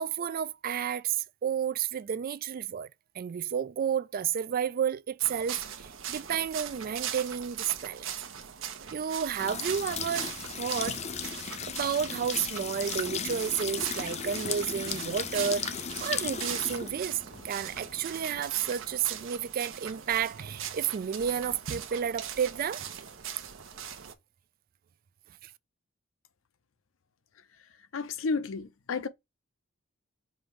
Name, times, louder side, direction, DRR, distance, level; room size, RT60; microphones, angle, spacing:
voice 1, 0.0-2.9 3.1-8.1 8.9-10.3 10.5-11.0 11.7-22.8 25.4-25.5, right 8 dB, 45° right, 0.3 m, -31 dB
sound 1, 5.2-24.1, right 8 dB, 80° right, 0.8 m, -40 dB
sound 2, 9.4-19.1, left 7 dB, 35° left, 0.5 m, -37 dB
voice 2, 27.9-29.1, left 4 dB, 80° left, 0.6 m, -31 dB
5.0 x 2.6 x 3.1 m
head